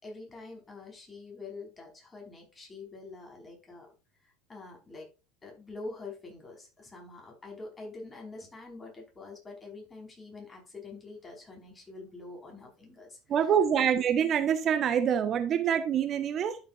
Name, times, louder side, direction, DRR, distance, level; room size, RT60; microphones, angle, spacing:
voice 1, 0.0-3.9 4.2-5.1 5.4-13.9, left 3 dB, 20° left, 5.0 m, -46 dB
voice 2, 13.3-16.6, right 8 dB, 40° right, 1.1 m, -26 dB
12.0 x 7.3 x 2.6 m
figure-of-eight pair, 75°, 0 cm